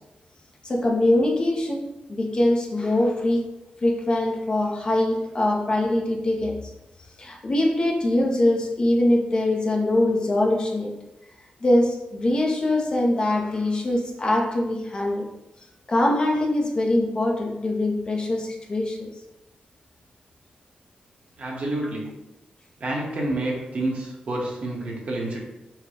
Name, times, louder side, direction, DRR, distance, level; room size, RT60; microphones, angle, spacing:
voice 1, 0.6-3.5 3.8-6.7 7.2-10.9 11.6-15.3 15.9-19.1, left 1 dB, 30° left, -1 dB, 0.7 m, -23 dB
voice 2, 21.4-22.0 22.8-25.4, right 1 dB, 50° right, -2 dB, 1.1 m, -28 dB
4.6 x 2.2 x 4.8 m, 0.95 s
wide cardioid pair, 180°, 3 cm